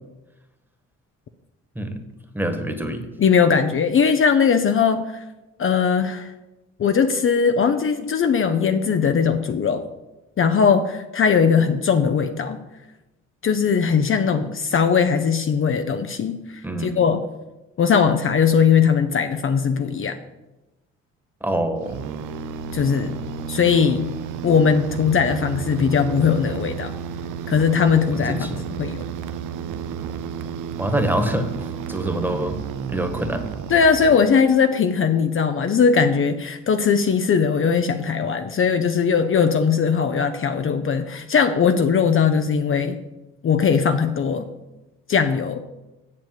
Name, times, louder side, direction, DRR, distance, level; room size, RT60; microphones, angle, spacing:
voice 1, 2.3-3.1 16.6-17.0 21.4-22.0 28.1-28.6 30.8-31.5 31.9-32.6 32.9-33.4, right 1 dB, 5° right, 6 dB, 1.5 m, -25 dB
voice 2, 3.2-5.2 5.6-6.3 6.8-9.8 10.4-12.6 13.4-17.3 17.8-20.2 22.7-23.2 23.5-24.1 24.4-26.9 27.5-28.5 28.8-29.0 33.7-43.0 43.4-44.5 45.1-45.6, left 6 dB, 45° left, 7 dB, 0.7 m, -19 dB
sound 1, 21.8-34.6, right 7 dB, 90° right, 0.7 m, -32 dB
7.6 x 7.2 x 7.8 m, 1.0 s
cardioid pair, 90°, 30 cm